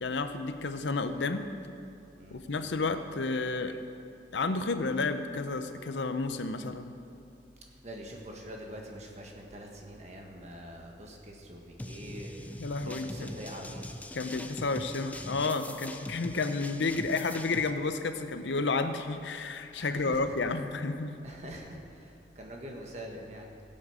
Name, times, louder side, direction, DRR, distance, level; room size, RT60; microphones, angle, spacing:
voice 1, 0.0-1.5 2.3-3.8 4.3-6.9 12.6-13.4 14.1-21.1, left 3 dB, 85° left, 9 dB, 0.7 m, -31 dB
voice 2, 7.8-14.0 19.7-20.3 21.2-23.5, equal, 40° right, 1 dB, 1.5 m, -44 dB
sound 1, 11.8-17.7, left 1 dB, 10° left, 0.4 m, -42 dB
16.5 x 7.6 x 4.9 m, 2.5 s
head